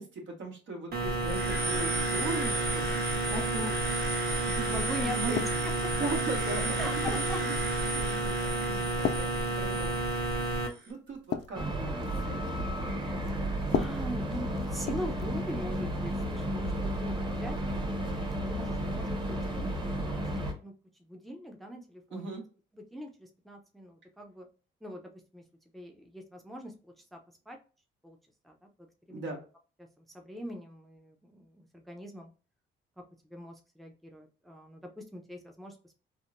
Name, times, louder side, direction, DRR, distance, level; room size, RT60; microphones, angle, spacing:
voice 1, 0.0-2.9 3.3-3.7 4.4-5.4 5.9-10.0 10.9-11.9 12.2-12.7 22.1-22.4 29.1-29.4, right 3 dB, 70° right, 1 dB, 1.3 m, -39 dB
sound 1, 0.9-10.7, right 2 dB, 50° right, 1.2 m, -30 dB
voice 2, 4.7-5.7 6.8-7.4 13.7-17.6 18.4-20.0 20.3-20.7 21.0-22.3 22.7-24.5 24.8-25.0 25.3-25.4 25.7-27.2 27.5-27.6 28.0-28.2 28.4-29.2 30.0-32.3 33.3-35.9, equal, ahead, 3 dB, 0.6 m, -42 dB
sound 2, 5.4-5.9 6.5-7.4 8.0-8.3 9.0-10.2 10.5-10.7 11.1-12.4 13.6-15.4 15.7-16.0 17.1-17.3, left 8 dB, 55° left, 0.4 m, -36 dB
sound 3, 11.5-20.5, right 1 dB, 25° right, 1.0 m, -33 dB
3.5 x 2.1 x 2.5 m, 0.36 s
cardioid pair, 90°, 20 cm